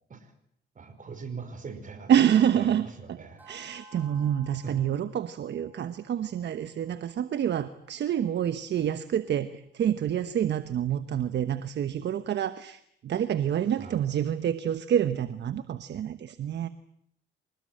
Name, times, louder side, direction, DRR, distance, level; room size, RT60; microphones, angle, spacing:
voice 1, 0.8-2.1 2.5-3.5 4.6-4.7 13.8-14.0, right 5 dB, 40° right, 10 dB, 5.3 m, -41 dB
voice 2, 2.1-3.2 3.5-16.7, right 9 dB, 60° right, 12 dB, 1.2 m, -27 dB
sound 1, 3.4-8.0, right 1 dB, 10° right, 6.8 m, -55 dB
26.5 x 19.5 x 9.1 m, 0.73 s
cardioid pair, 90°, 20 cm